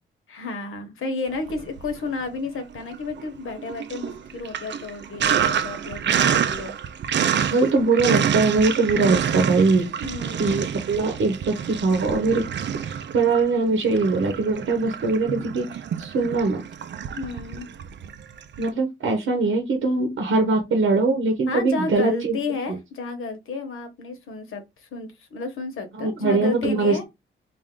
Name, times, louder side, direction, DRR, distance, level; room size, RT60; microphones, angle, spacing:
voice 1, 0.3-6.8 10.0-10.5 17.1-17.7 21.5-27.0, left 4 dB, 75° left, 1.1 m, -32 dB
Sink (filling or washing), 1.4-2.3 2.6-18.7, right 8 dB, 60° right, 0.5 m, -27 dB
voice 2, 7.5-9.9 10.4-12.5 12.8-16.6 18.6-22.4 26.0-27.0, right 3 dB, 75° right, 0.9 m, -22 dB
3.5 x 2.6 x 3.7 m
cardioid pair, 115°, 21 cm